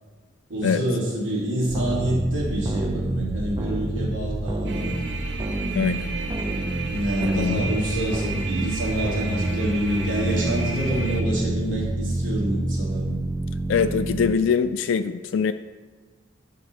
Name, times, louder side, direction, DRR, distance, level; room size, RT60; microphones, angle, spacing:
voice 1, 0.5-4.9 6.8-13.1, right 1 dB, 90° right, -6 dB, 2.5 m, -27 dB
sound 1, 1.7-14.4, right 1 dB, 20° right, 0.4 m, -28 dB
sound 2, 4.7-11.2, right 3 dB, 65° right, 0.8 m, -34 dB
voice 2, 5.7-6.1 7.2-7.6 13.7-15.5, left 6 dB, 80° left, 9 dB, 0.3 m, -23 dB
9.3 x 5.9 x 4.0 m, 1.4 s
head